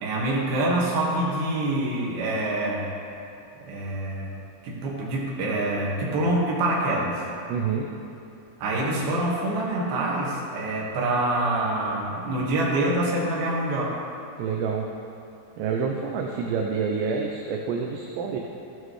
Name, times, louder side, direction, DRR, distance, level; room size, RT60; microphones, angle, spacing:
voice 1, 0.0-2.9 3.6-4.3 4.6-7.2 8.6-14.0, right 1 dB, 60° right, -5 dB, 3.2 m, -26 dB
voice 2, 7.5-7.9 14.4-14.9 15.6-18.4, right 5 dB, 80° right, 1 dB, 2.8 m, -27 dB
14.5 x 8.5 x 3.2 m, 2.7 s
omnidirectional pair, 5.2 m